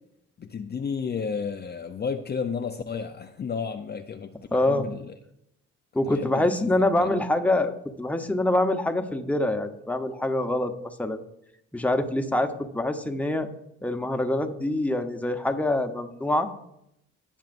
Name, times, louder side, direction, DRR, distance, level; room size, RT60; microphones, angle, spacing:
voice 1, 0.4-5.1 6.1-6.5 7.0-7.1, left 6 dB, 35° left, 5 dB, 0.6 m, -32 dB
voice 2, 4.5-4.9 5.9-7.7 8.0-11.2 11.7-13.5 13.8-16.5, left 1 dB, 5° left, 6 dB, 1.0 m, -25 dB
18.0 x 7.3 x 2.6 m, 0.80 s
cardioid pair, 90°, 30 cm